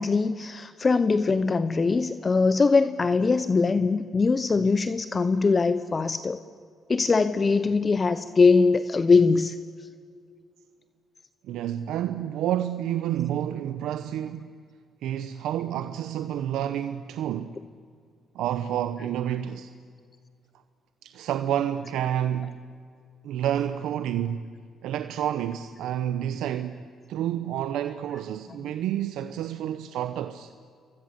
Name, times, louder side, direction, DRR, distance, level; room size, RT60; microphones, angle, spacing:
voice 1, 0.0-6.4 6.9-9.6, left 4 dB, 30° left, 0.9 m, -22 dB
voice 2, 11.4-14.5 15.0-17.6 18.3-19.7 21.0-22.6 23.2-24.5 24.8-30.5, right 11 dB, 85° right, 0.9 m, -29 dB
28.5 x 23.0 x 8.1 m
cardioid pair, 90°, 0 cm